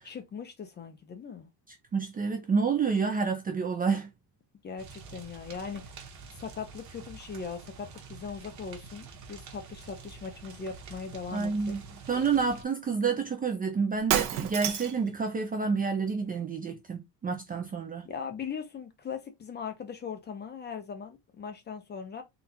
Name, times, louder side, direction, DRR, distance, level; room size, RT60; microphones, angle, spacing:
voice 1, 0.0-1.5 4.6-5.9 6.3-11.8 18.0-22.2, left 6 dB, 25° left, 0.6 m, -39 dB
voice 2, 1.9-4.1 11.3-11.8 12.1-18.1, right 5 dB, 20° right, 0.4 m, -29 dB
sound 1, 4.8-12.6, right 4 dB, 45° right, 1.1 m, -47 dB
Shatter, 14.1-15.1, right 10 dB, 65° right, 0.8 m, -29 dB
3.9 x 2.4 x 4.2 m
cardioid pair, 175°, 41 cm